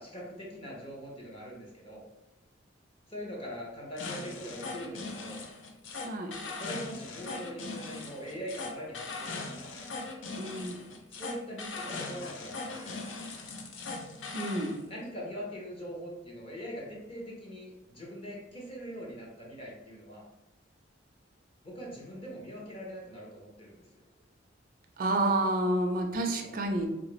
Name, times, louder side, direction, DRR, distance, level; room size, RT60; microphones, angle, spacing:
voice 1, 0.0-2.0 3.1-5.4 6.6-9.7 11.1-13.0 14.8-20.3 21.6-23.8 26.4-26.5, equal, 30° left, -3 dB, 0.8 m, -42 dB
sound 1, 4.0-14.8, left 3 dB, 75° left, 0.5 m, -40 dB
voice 2, 10.4-10.8 14.3-14.8 25.0-26.9, right 1 dB, 45° right, 4 dB, 0.3 m, -29 dB
3.2 x 2.4 x 3.0 m, 0.94 s
head